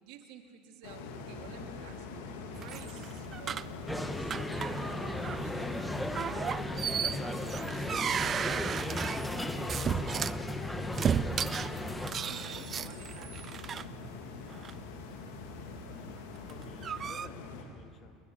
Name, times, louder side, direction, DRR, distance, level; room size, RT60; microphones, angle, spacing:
voice 1, 0.0-2.2 2.5-3.7 4.0-6.3 6.9-8.3 8.9-10.0 12.1-13.5, right 8 dB, 65° right, 4 dB, 3.1 m, -52 dB
sound 1, 0.8-17.6, left 3 dB, 70° left, 3.9 m, -43 dB
sound 2, 2.5-3.8 4.3-4.9 5.2-5.4 6.2-10.4 10.9-13.8 14.5-14.7 16.4-17.3, right 8 dB, 35° right, 0.7 m, -34 dB
sound 3, 3.9-12.1, left 1 dB, 5° left, 1.8 m, -36 dB
voice 2, 12.1-12.5 15.9-16.2 16.5-18.2, left 6 dB, 45° left, 5 dB, 2.7 m, -54 dB
30.0 x 20.5 x 8.3 m, 2.4 s
hypercardioid pair, 75°, 0 cm